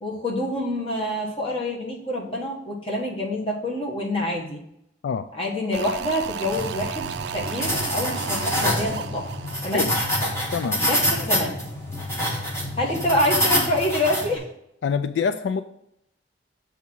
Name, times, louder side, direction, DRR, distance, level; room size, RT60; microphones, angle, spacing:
voice 1, 0.0-4.6 5.3-9.3 9.6-9.9 10.8-11.6 12.8-14.5, left 1 dB, 30° left, -2 dB, 1.4 m, -26 dB
sound 1, 5.7-10.9 11.1-11.2, right 7 dB, 70° right, 0.4 m, -34 dB
sound 2, 6.5-14.4, equal, 15° left, 1.3 m, -26 dB
voice 2, 14.8-15.6, left 6 dB, 80° left, 10 dB, 0.3 m, -25 dB
7.1 x 3.6 x 5.9 m, 0.78 s
head